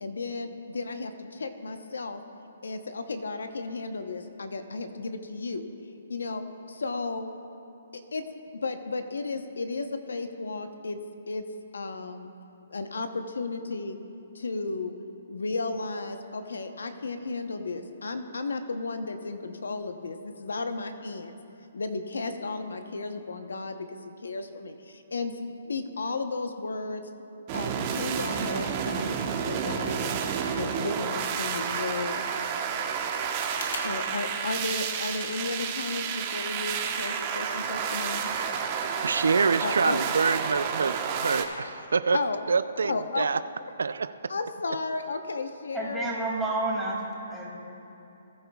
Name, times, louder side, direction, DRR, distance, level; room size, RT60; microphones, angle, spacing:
voice 1, 0.0-2.2 2.6-5.6 6.1-6.4 6.7-7.3 8.1-8.2 8.5-11.0 11.3-11.4 11.7-12.3 12.7-14.0 14.3-14.9 15.3-21.4 21.7-25.4 25.7-27.0 27.5-30.1 30.6-32.2 33.7-38.3 39.6-40.0 42.1-42.4 42.8-43.3 44.3-46.1 46.8-46.9, left 3 dB, 85° left, 8 dB, 0.9 m, -34 dB
sound 1, 27.5-41.4, right 7 dB, 35° right, 1.0 m, -30 dB
sound 2, 33.5-33.9, left 3 dB, 70° left, 2.0 m, -44 dB
voice 2, 39.0-42.2 42.5-43.4 43.8-44.3, right 5 dB, 80° right, 14 dB, 0.3 m, -26 dB
voice 3, 45.7-47.0 47.3-47.5, right 2 dB, 5° right, -5 dB, 2.5 m, -29 dB
19.5 x 9.9 x 2.3 m, 2.9 s
hypercardioid pair, 145°, 0 cm